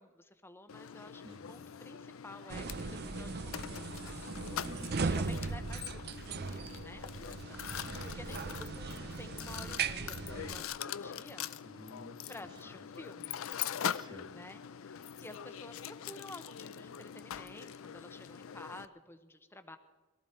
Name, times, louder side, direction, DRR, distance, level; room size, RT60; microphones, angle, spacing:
voice 1, 0.0-4.3 4.9-11.5 12.3-13.4 14.3-19.8, left 1 dB, 10° left, 9 dB, 0.9 m, -52 dB
Mechanisms, 0.7-18.8, left 9 dB, 80° left, 0.5 m, -43 dB
voice 2, 1.2-1.7 4.6-5.4 5.8-5.9 11.6-13.0 13.9-14.4, equal, 20° right, 4 dB, 1.7 m, -53 dB
sound 1, 2.5-10.6, right 4 dB, 50° right, 0.6 m, -38 dB
21.5 x 14.0 x 4.5 m, 1.2 s
head